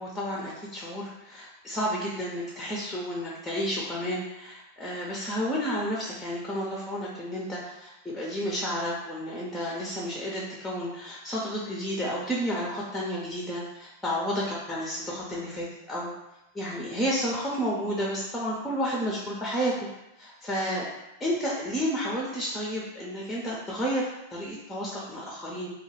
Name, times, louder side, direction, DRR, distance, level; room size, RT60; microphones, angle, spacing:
voice 1, 0.0-16.1 16.5-19.9 20.2-20.9 21.2-25.7, equal, 5° left, -4 dB, 0.6 m, -31 dB
2.3 x 2.2 x 3.2 m, 0.92 s
hypercardioid pair, 95°, 0 cm